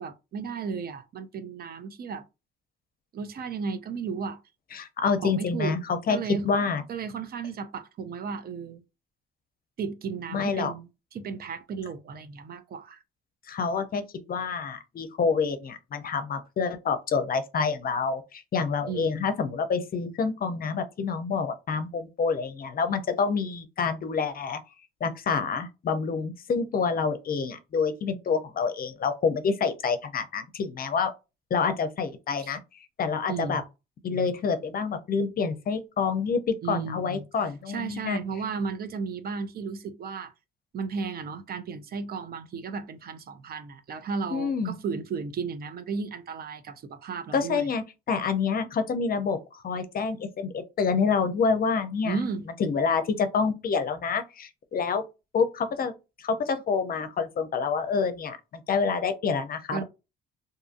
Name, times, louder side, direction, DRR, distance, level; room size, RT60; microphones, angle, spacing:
voice 1, 0.0-2.2 3.1-4.4 5.2-5.8 6.1-6.4 6.9-8.8 9.8-13.0 18.9-19.3 32.4-32.5 33.3-33.6 36.6-37.2 37.7-40.3 40.7-47.7 52.0-52.4 59.7-59.8, right 5 dB, 50° right, 0.5 m, -34 dB
voice 2, 4.7-6.2 6.4-6.8 10.3-10.7 13.5-14.0 14.3-24.6 25.0-31.1 31.5-32.6 33.0-33.6 34.0-38.2 44.3-44.7 47.3-49.4 49.6-52.2 52.6-55.0 55.3-55.9 56.2-58.4 58.7-59.8, left 5 dB, 50° left, 0.5 m, -27 dB
2.6 x 2.5 x 2.5 m
cardioid pair, 90°, 20 cm